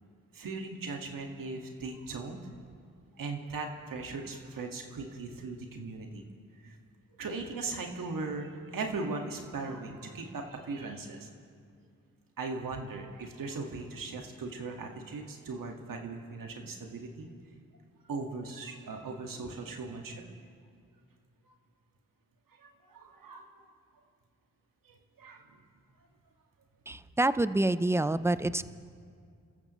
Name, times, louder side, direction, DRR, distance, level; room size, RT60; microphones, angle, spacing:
voice 1, 0.3-2.4 3.2-6.2 6.6-6.8 7.2-11.3 12.4-17.3 18.0-20.2 22.5-23.6 24.8-25.5 26.0-26.1, right 3 dB, 70° right, 3 dB, 1.9 m, -39 dB
voice 2, 26.9-28.6, right 2 dB, 10° right, 14 dB, 0.6 m, -27 dB
28.0 x 14.5 x 3.1 m, 2.2 s
supercardioid pair, 45°, 34 cm